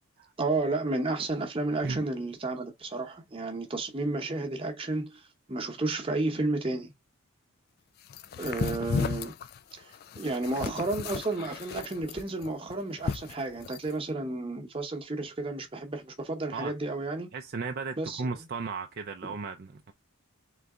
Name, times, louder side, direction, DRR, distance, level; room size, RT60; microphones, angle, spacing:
voice 1, 0.4-6.9 8.4-9.3 9.8-17.3 18.0-18.2, right 2 dB, 25° right, 0.9 m, -32 dB
sound 1, 8.1-13.9, left 5 dB, 45° left, 0.3 m, -34 dB
voice 2, 17.3-19.9, right 4 dB, 45° right, 0.4 m, -35 dB
4.0 x 3.4 x 3.6 m
head